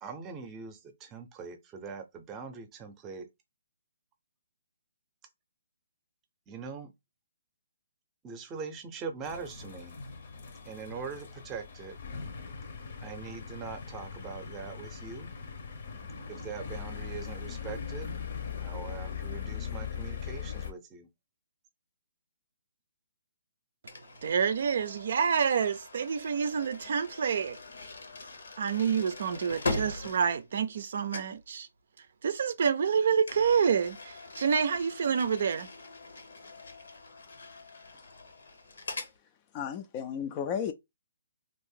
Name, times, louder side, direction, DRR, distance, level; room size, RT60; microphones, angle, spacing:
voice 1, 0.0-3.3 6.5-6.9 8.2-10.0 10.6-12.0 13.0-15.3 16.3-18.2 18.6-21.1, right 5 dB, 15° right, 0.7 m, -42 dB
sound 1, 9.2-20.7, left 6 dB, 55° left, 0.7 m, -40 dB
sound 2, 23.9-30.8 31.1-31.4 33.2-39.2, left 2 dB, 80° left, 0.9 m, -41 dB
voice 2, 24.2-27.6 28.6-31.7 32.2-35.7, right 6 dB, 60° right, 0.5 m, -28 dB
voice 3, 39.5-40.7, left 8 dB, 25° left, 0.4 m, -33 dB
2.6 x 2.5 x 3.7 m
hypercardioid pair, 155°, 0 cm